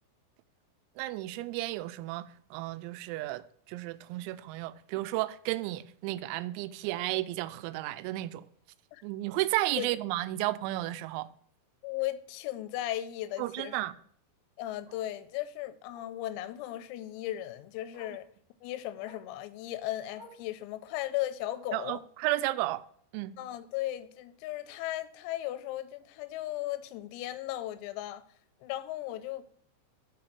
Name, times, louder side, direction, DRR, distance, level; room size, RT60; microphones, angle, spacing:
voice 1, 1.0-8.5 9.0-11.3 13.4-13.9 21.7-22.8 23.1-23.3, right 17 dB, 90° right, 3.3 m, -33 dB
Bark, 8.4-8.6 9.0-9.1 9.5-9.6 9.8-9.9 11.3-11.4 13.9-14.0 14.9-15.1 15.9-16.2 17.4-17.5 17.9-18.3 19.0-19.3 20.1-20.5 21.4-21.8 22.8-22.9, equal, 35° right, 2.1 m, -55 dB
voice 2, 11.8-13.8 14.6-18.3 18.6-22.0 23.4-28.2 28.6-29.5, left 14 dB, 90° left, 3.4 m, -36 dB
6.9 x 6.6 x 6.6 m
omnidirectional pair, 5.9 m